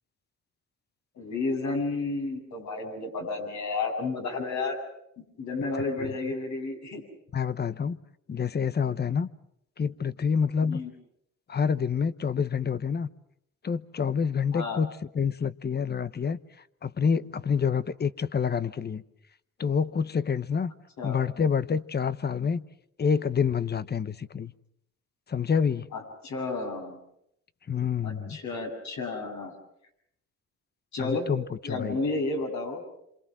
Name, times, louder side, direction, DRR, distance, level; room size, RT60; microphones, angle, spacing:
voice 1, 1.1-4.8 5.4-7.0 10.6-10.9 14.5-14.8 21.0-21.2 25.9-27.0 28.0-29.5 30.9-31.3 31.6-32.8, left 3 dB, 65° left, 7.6 m, -31 dB
voice 2, 7.3-8.0 8.3-9.3 9.8-10.8 11.5-13.1 13.6-16.4 16.8-19.0 19.6-20.7 21.0-22.6 23.0-24.5 25.3-25.9 27.7-28.4 31.0-32.0, left 6 dB, 35° left, 1.0 m, -27 dB
28.0 x 26.5 x 6.2 m
cardioid pair, 90°, 30 cm